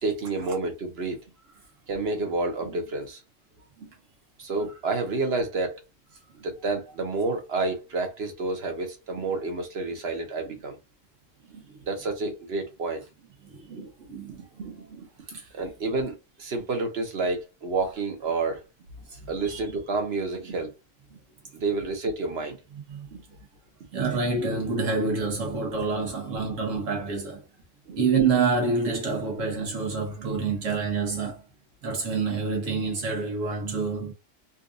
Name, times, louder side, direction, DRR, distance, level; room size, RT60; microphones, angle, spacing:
voice 1, 0.0-1.2 1.9-3.2 3.8-3.9 4.4-5.8 6.3-10.8 11.5-13.0 13.7-13.9 14.5-15.1 15.5-18.6 19.3-20.7 21.5-22.6 23.1-23.2 23.9-24.0 26.4-26.5 27.9-28.0, right 3 dB, 55° right, 1.2 m, -29 dB
voice 2, 13.4-14.5 15.3-15.5 19.1-19.6 22.9-23.1 23.9-27.4 28.0-31.4 31.8-34.1, right 4 dB, 85° right, 1.6 m, -27 dB
4.0 x 2.5 x 2.5 m
omnidirectional pair, 1.3 m